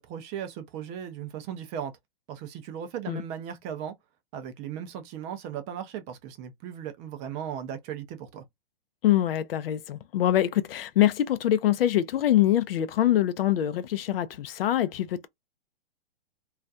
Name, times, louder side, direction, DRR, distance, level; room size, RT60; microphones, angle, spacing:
voice 1, 0.0-1.9 2.3-3.9 4.3-8.4, right 9 dB, 25° right, 0.4 m, -37 dB
voice 2, 9.0-15.3, left 12 dB, 70° left, 0.5 m, -24 dB
2.4 x 2.1 x 2.5 m
hypercardioid pair, 130°, 30 cm